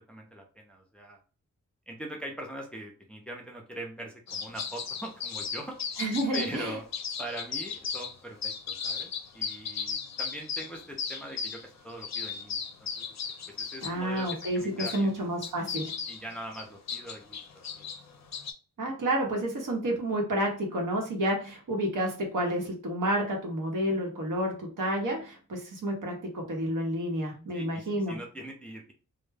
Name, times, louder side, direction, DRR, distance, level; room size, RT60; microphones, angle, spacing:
voice 1, 0.1-1.2 1.9-5.8 6.3-6.8 7.2-12.9 13.5-14.3 14.5-15.1 16.1-17.4 17.8-17.9 27.5-28.9, right 1 dB, 5° left, 1 dB, 0.5 m, -42 dB
sound 1, 4.3-6.6 6.9-8.1 8.4-15.0 15.4-18.5, left 6 dB, 55° left, 0.4 m, -36 dB
voice 2, 6.0-6.8 13.8-16.0 18.8-28.2, right 1 dB, 75° right, 1 dB, 0.9 m, -30 dB
2.2 x 2.1 x 3.2 m, 0.35 s
wide cardioid pair, 125°, 32 cm